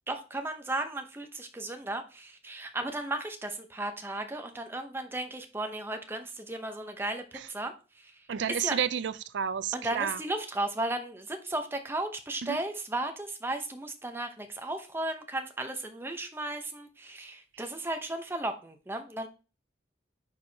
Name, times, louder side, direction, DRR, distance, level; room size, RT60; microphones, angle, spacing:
voice 1, 0.1-8.8 9.7-19.3, right 2 dB, 10° right, 0.8 m, -35 dB
voice 2, 8.3-10.2 12.4-12.6, right 8 dB, 80° right, 0.4 m, -31 dB
9.5 x 4.6 x 2.8 m
head